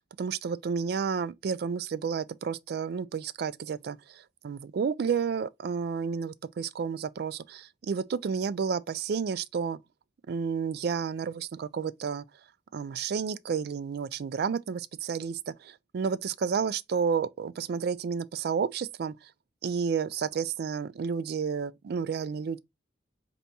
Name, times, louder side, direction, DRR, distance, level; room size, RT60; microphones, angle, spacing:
voice 1, 0.0-9.8 10.3-12.2 12.7-19.3 19.6-22.6, right 6 dB, 60° right, 0.3 m, -31 dB
4.0 x 3.4 x 2.7 m
head